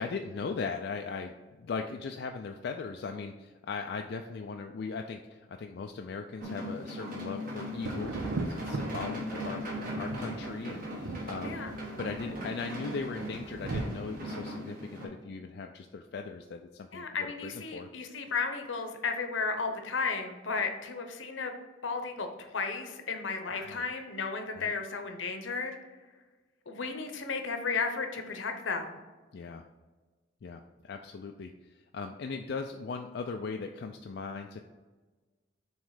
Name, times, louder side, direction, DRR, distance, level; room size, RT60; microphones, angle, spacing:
voice 1, 0.0-11.6 12.0-17.9 23.5-23.8 24.6-24.7 29.3-29.6 30.4-34.6, left 4 dB, 60° left, 4 dB, 0.3 m, -39 dB
sound 1, 6.4-15.1, equal, 45° right, 1.8 m, -38 dB
Thunder, 7.7-13.8, right 3 dB, 90° right, 0.6 m, -39 dB
voice 2, 16.9-21.5 21.8-25.7 26.7-28.9, left 4 dB, 80° left, 6 dB, 0.8 m, -34 dB
7.4 x 3.1 x 4.8 m, 1.3 s
head